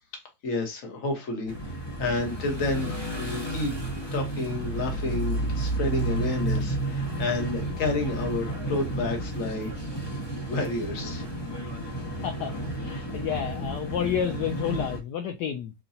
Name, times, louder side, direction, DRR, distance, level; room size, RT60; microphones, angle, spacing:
voice 1, 0.4-3.8 4.1-9.7 10.5-11.3, left 2 dB, 50° left, 1.3 m, -30 dB
sound 1, 1.5-15.0, right 1 dB, 20° left, 0.7 m, -31 dB
voice 2, 12.0-12.6 12.8-15.7, left 8 dB, 75° left, 1.1 m, -30 dB
5.6 x 2.2 x 2.7 m
omnidirectional pair, 2.0 m